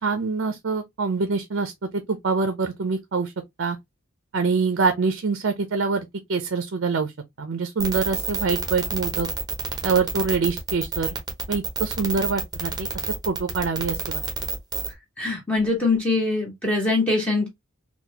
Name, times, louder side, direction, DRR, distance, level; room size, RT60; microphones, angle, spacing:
voice 1, 0.0-3.3 3.6-3.8 4.3-7.1 7.4-9.3 9.8-11.2 11.5-14.2, right 4 dB, 55° right, 0.5 m, -25 dB
sound 1, 7.8-14.9, right 4 dB, 20° right, 0.8 m, -29 dB
voice 2, 15.2-17.5, left 3 dB, 5° left, 1.0 m, -23 dB
3.9 x 2.3 x 2.7 m
head